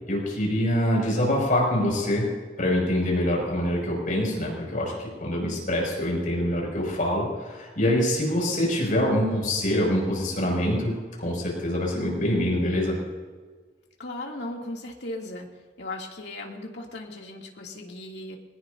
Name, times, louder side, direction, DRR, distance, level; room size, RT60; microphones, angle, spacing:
voice 1, 0.1-2.3 2.6-13.0, left 1 dB, 50° left, -2 dB, 6.5 m, -25 dB
voice 2, 14.0-15.5 15.8-18.4, left 2 dB, 75° left, -1 dB, 2.7 m, -37 dB
22.0 x 20.0 x 2.8 m, 1.4 s
head